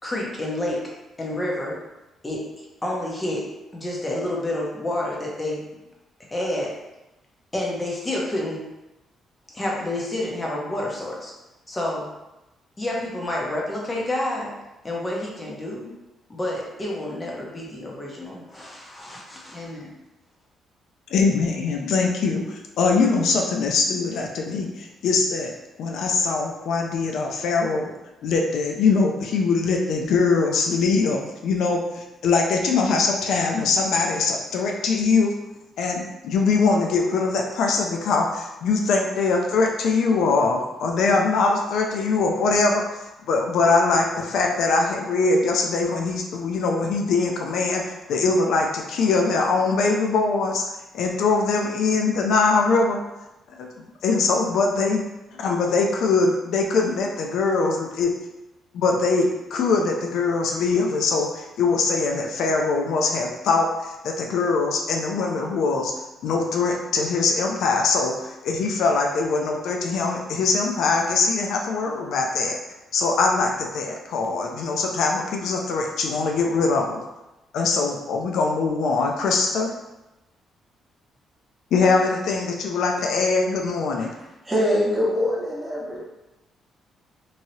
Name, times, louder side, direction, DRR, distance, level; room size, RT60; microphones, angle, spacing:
voice 1, 0.0-0.9 1.2-1.8 2.2-2.4 2.8-3.5 3.7-5.6 6.3-6.7 7.5-8.6 9.5-11.3 11.7-12.1 12.8-14.5 14.8-15.9 16.3-19.9, left 1 dB, 25° left, -3 dB, 0.8 m, -29 dB
voice 2, 21.1-25.5 25.8-27.9 28.2-35.3 35.8-43.0 43.3-50.6 50.9-53.0 53.6-55.0 55.3-58.1 58.7-65.9 66.2-72.6 72.9-77.0 77.5-79.7 81.7-84.1, left 4 dB, 75° left, 1 dB, 0.4 m, -22 dB
voice 3, 84.0-86.0, equal, 10° right, -6 dB, 1.2 m, -24 dB
3.0 x 2.7 x 2.7 m, 1.0 s
cardioid pair, 90°, 0 cm